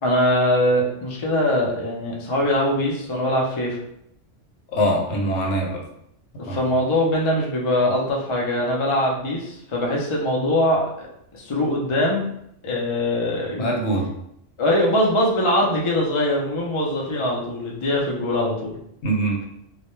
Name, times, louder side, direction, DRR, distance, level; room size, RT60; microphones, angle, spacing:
voice 1, 0.0-3.8 6.4-11.1 11.3-12.3 12.6-13.7 14.6-18.8, left 1 dB, 50° left, -2 dB, 0.3 m, -22 dB
voice 2, 4.7-5.8 6.5-6.6 13.6-14.1 19.0-19.4, right 1 dB, 70° left, -1 dB, 0.9 m, -23 dB
2.2 x 2.1 x 3.0 m, 0.74 s
omnidirectional pair, 1.2 m